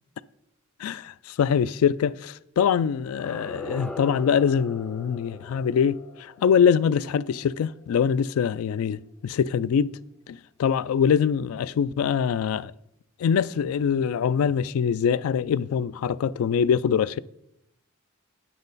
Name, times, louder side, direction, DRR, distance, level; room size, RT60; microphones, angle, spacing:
voice 1, 0.8-9.9 10.3-12.7 13.2-17.2, left 7 dB, 90° left, 0.3 m, -23 dB
sound 1, 3.0-8.0, left 1 dB, 5° left, 0.3 m, -41 dB
8.8 x 7.6 x 4.0 m
head